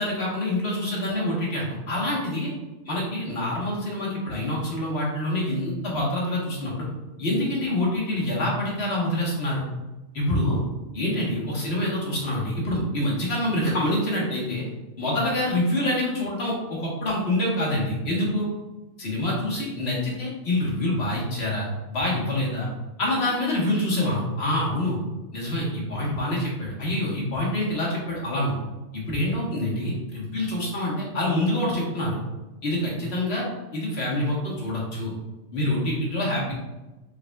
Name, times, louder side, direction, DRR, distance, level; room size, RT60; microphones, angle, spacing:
voice 1, 0.0-2.5 2.8-6.8 7.2-9.7 10.1-10.6 10.9-14.6 15.0-18.5 19.0-22.7 23.0-25.0 25.3-28.6 28.9-32.2 32.6-33.4 33.7-35.1 35.5-36.5, left 1 dB, 50° left, -4 dB, 1.5 m, -26 dB
5.0 x 4.1 x 2.3 m, 1.1 s
omnidirectional pair, 1.4 m